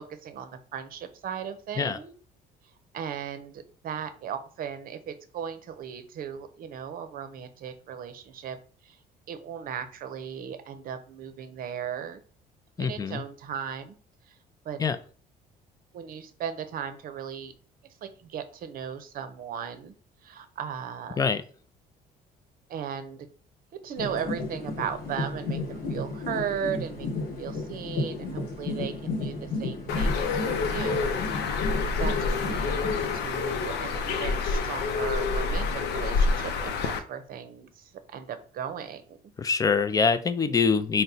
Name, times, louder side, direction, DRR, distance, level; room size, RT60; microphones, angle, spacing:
voice 1, 0.0-2.1 2.9-8.6 8.8-9.0 9.3-12.2 12.8-14.0 14.3-14.4 14.6-14.8 15.9-17.5 18.0-19.9 20.2-21.2 22.7-23.3 23.8-31.2 31.5-31.7 32.0-39.2, right 8 dB, 60° right, 10 dB, 0.6 m, -37 dB
voice 2, 12.8-13.2 14.8-15.0 21.2-21.4 39.4-41.0, left 5 dB, 20° left, 11 dB, 0.4 m, -24 dB
sound 1, 24.0-33.2, left 3 dB, 60° left, 1.2 m, -33 dB
Bird, 29.9-37.0, left 4 dB, 75° left, 0.5 m, -27 dB
4.1 x 2.1 x 3.9 m, 0.42 s
cardioid pair, 110°, 17 cm